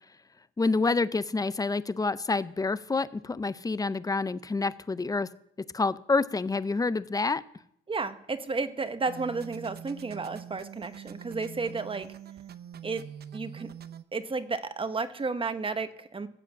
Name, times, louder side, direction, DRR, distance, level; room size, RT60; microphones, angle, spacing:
voice 1, 0.6-5.3 5.7-7.4, left 3 dB, 20° left, 16 dB, 0.6 m, -28 dB
voice 2, 7.9-12.1 12.8-13.0 13.3-13.7 14.1-16.3, right 4 dB, 25° right, 10 dB, 1.1 m, -32 dB
sound 1, 9.1-14.0, right 9 dB, 55° right, 0.8 m, -44 dB
15.0 x 7.5 x 7.2 m, 0.75 s
cardioid pair, 90°, 20 cm